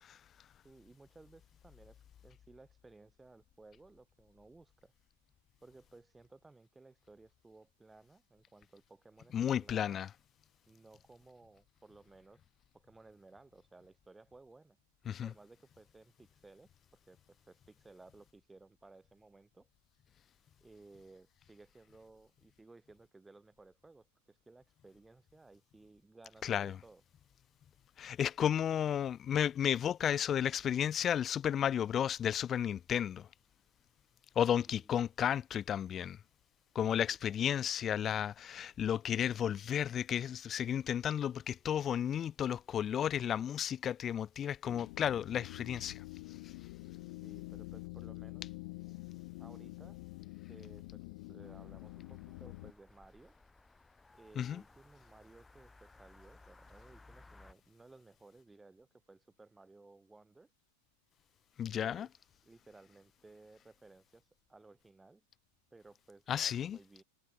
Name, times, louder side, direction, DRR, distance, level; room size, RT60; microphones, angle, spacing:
voice 1, 0.6-4.9 5.6-10.0 10.7-12.4 12.7-14.8 15.0-16.7 17.1-19.7 20.6-27.0 34.7-34.9 37.0-37.6 47.2-48.5 49.4-50.0 50.5-53.3 54.1-60.5 61.7-62.1 62.4-65.2 65.7-67.0, right 3 dB, 10° right, 4.0 m, -59 dB
voice 2, 9.3-10.1 15.1-15.3 26.4-26.8 28.0-33.3 34.4-36.2 36.8-46.0 54.4-54.6 61.6-62.1 66.3-66.8, left 9 dB, 25° left, 0.4 m, -33 dB
sound 1, 44.7-52.7, left 24 dB, 50° left, 2.2 m, -47 dB
sound 2, 51.4-57.5, left 3 dB, 10° left, 4.3 m, -61 dB
figure-of-eight pair, 90°, 0 cm